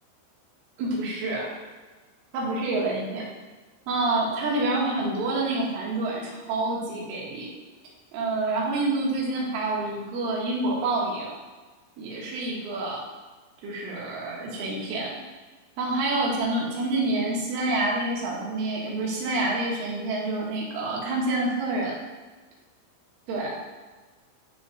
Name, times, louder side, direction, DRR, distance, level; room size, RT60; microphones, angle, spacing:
voice 1, 0.8-1.5 2.3-3.3 3.9-7.5 8.1-11.4 12.0-13.0 13.6-15.2 15.8-22.0 23.3-23.5, right 2 dB, 75° right, -4 dB, 4.4 m, -27 dB
12.0 x 8.2 x 2.5 m, 1.3 s
omnidirectional pair, 5.7 m